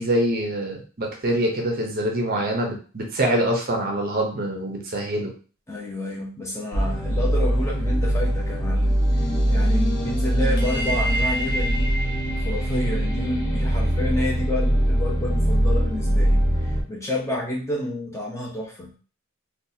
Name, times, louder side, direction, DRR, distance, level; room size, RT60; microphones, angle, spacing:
voice 1, 0.0-5.3, right 1 dB, 40° right, 1 dB, 0.7 m, -25 dB
voice 2, 5.7-11.9 12.4-18.9, left 1 dB, 15° left, -3 dB, 0.8 m, -30 dB
sound 1, 6.7-16.8, equal, 50° left, 0.9 m, -22 dB
3.9 x 2.4 x 2.7 m, 0.38 s
head